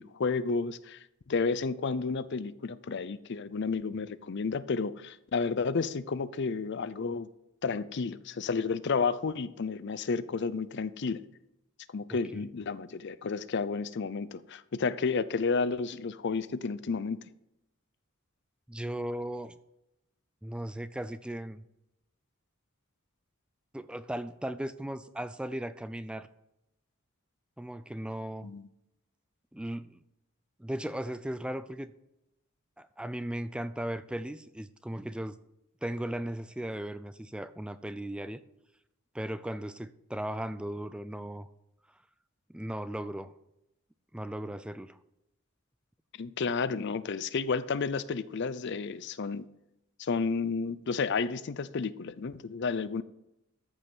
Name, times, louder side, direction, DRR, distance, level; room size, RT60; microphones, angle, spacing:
voice 1, 0.0-7.3 7.6-11.2 11.9-17.2 28.4-28.7 46.1-49.5 50.0-53.0, left 4 dB, 55° left, 16 dB, 0.5 m, -31 dB
voice 2, 18.7-19.5 20.4-21.6 23.7-26.3 27.6-28.5 29.5-30.0 30.6-31.9 32.8-35.4 35.8-38.4 39.1-41.5 42.5-43.3 44.1-45.0, right 1 dB, 5° right, 13 dB, 0.3 m, -37 dB
14.0 x 5.5 x 6.2 m, 0.87 s
head